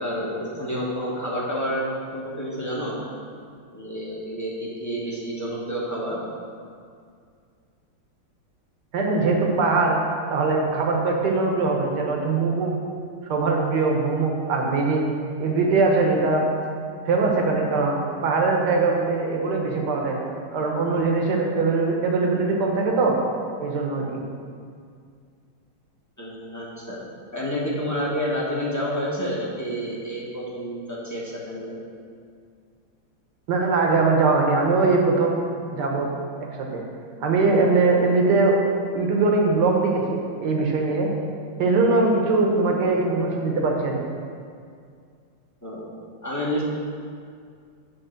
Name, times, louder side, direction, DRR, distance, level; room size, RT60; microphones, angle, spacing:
voice 1, 0.0-1.8 2.1-3.0 3.7-6.2 26.2-27.0 27.3-31.7 45.6-45.8 46.2-46.6, equal, 10° left, -6 dB, 0.9 m, -29 dB
voice 2, 8.9-10.0 10.3-12.7 13.3-15.0 15.4-16.4 17.0-20.2 20.5-23.2 23.6-24.1 33.5-35.4 35.7-36.1 36.6-36.8 37.2-38.6 38.9-41.1 41.6-44.0, right 3 dB, 60° right, 0 dB, 1.6 m, -21 dB
9.1 x 3.5 x 6.5 m, 2.2 s
omnidirectional pair, 2.2 m